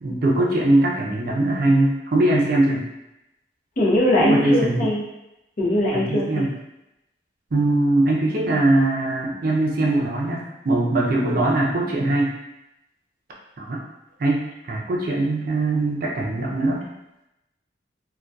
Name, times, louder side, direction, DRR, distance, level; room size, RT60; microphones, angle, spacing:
voice 1, 0.0-2.9 4.2-4.9 5.9-6.5 7.5-12.3 13.6-13.8 14.2-14.4 14.7-16.8, right 2 dB, 55° right, -2 dB, 0.4 m, -21 dB
voice 2, 3.8-5.0 5.6-6.4, left 1 dB, 50° left, -5 dB, 0.7 m, -21 dB
2.6 x 2.2 x 2.2 m, 0.91 s
head